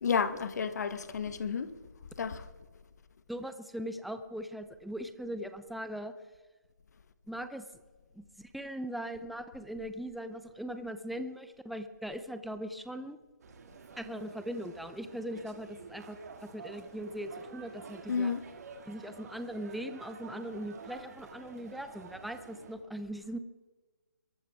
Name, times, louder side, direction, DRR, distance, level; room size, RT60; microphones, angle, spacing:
voice 1, 0.0-1.7 2.2-2.4 18.1-18.4, left 6 dB, 60° left, 1.3 m, -31 dB
voice 2, 3.3-6.1 7.3-7.6 8.1-13.2 14.0-18.3 18.8-23.4, equal, ahead, 0.6 m, -40 dB
sound 1, 13.4-22.8, right 5 dB, 55° right, 2.3 m, -50 dB
22.5 x 12.5 x 3.6 m
hypercardioid pair, 150°, 10 cm